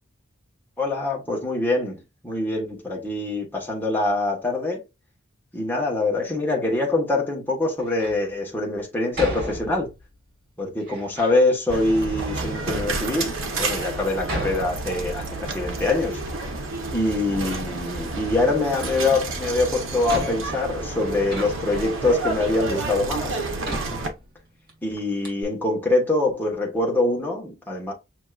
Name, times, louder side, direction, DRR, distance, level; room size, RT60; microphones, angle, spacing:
voice 1, 0.8-4.8 5.5-9.9 10.6-16.2 16.9-23.4 24.8-27.9, left 2 dB, 10° left, 1.4 m, -24 dB
Door, 7.8-8.3 9.1-10.1 10.8-11.4 12.2-12.3 13.0-13.1 14.2-15.4 15.7-16.8 17.1-17.9 19.3-19.4 20.1-22.0 22.7-22.8 23.6-24.7 25.0-25.1 25.2-25.4, right 1 dB, 50° right, 2.3 m, -35 dB
sound 1, 11.7-24.1, right 2 dB, 75° right, 1.0 m, -30 dB
6.2 x 2.9 x 2.5 m
head